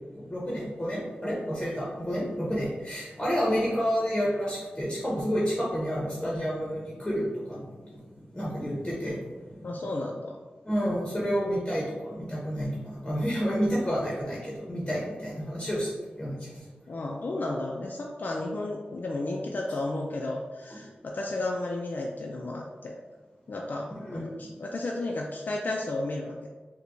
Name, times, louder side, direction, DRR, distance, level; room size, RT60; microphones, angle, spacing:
voice 1, 0.2-7.7 8.3-9.2 10.6-15.9 16.2-16.5 23.9-24.3, equal, 15° left, -5 dB, 0.8 m, -29 dB
voice 2, 9.6-10.4 16.9-23.0 23.5-26.5, left 2 dB, 60° left, -1 dB, 0.3 m, -33 dB
4.3 x 2.1 x 2.6 m, 1.3 s
cardioid pair, 60°, 4 cm